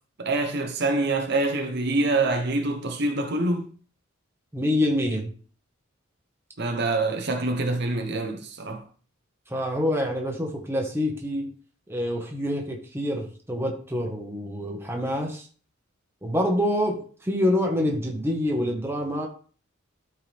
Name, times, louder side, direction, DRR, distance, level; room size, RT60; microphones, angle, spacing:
voice 1, 0.2-3.7 6.6-8.8, right 2 dB, 55° right, 1.0 m, -25 dB
voice 2, 4.5-5.3 9.5-11.5 11.9-15.5 16.2-19.3, left 1 dB, 10° right, 1.5 m, -26 dB
13.0 x 4.7 x 3.5 m
head